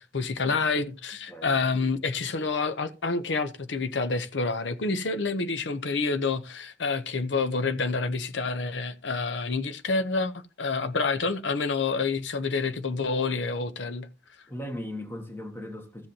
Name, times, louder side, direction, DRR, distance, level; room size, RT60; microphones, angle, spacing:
voice 1, 0.0-10.3 10.6-14.1, left 4 dB, 85° left, 0.8 m, -28 dB
voice 2, 1.3-1.9 14.5-16.1, left 1 dB, 15° left, 1.5 m, -38 dB
15.0 x 7.7 x 2.8 m
head